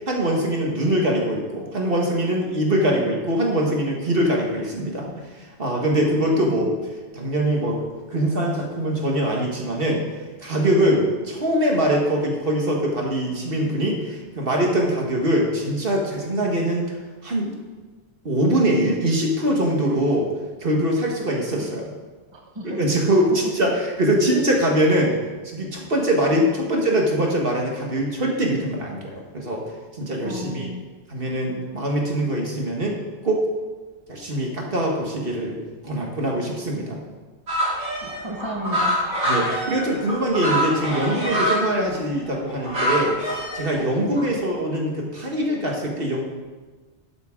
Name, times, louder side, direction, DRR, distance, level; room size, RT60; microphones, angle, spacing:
voice 1, 0.0-6.7 7.1-7.8 8.1-10.1 10.4-16.9 17.2-17.5 18.3-20.3 20.6-21.9 22.6-25.2 25.5-29.6 30.0-30.7 31.1-33.4 34.1-37.0 39.2-46.2, right 1 dB, 55° right, -1 dB, 1.8 m, -23 dB
voice 2, 6.3-6.7 21.6-21.7 22.3-22.8 26.4-26.5 30.2-30.8 38.0-39.2 44.0-44.2, equal, 25° right, -1 dB, 1.3 m, -34 dB
sound 1, 37.5-41.6 42.2-43.8 44.1-44.2, equal, 75° right, 3.2 m, -25 dB
12.0 x 8.9 x 3.8 m, 1.3 s
omnidirectional pair, 1.2 m